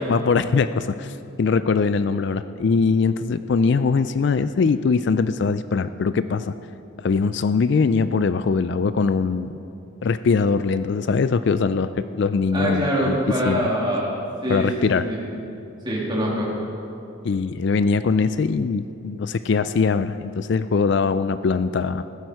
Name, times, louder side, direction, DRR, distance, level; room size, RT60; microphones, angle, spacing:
voice 1, 0.1-6.5 7.0-9.5 10.0-13.2 13.5-13.7 14.5-15.0 17.2-22.0, left 5 dB, 55° left, 12 dB, 0.3 m, -22 dB
voice 2, 12.5-14.1 14.4-15.2 15.8-16.5, equal, 20° right, -5 dB, 3.1 m, -24 dB
16.0 x 12.0 x 4.7 m, 2.6 s
head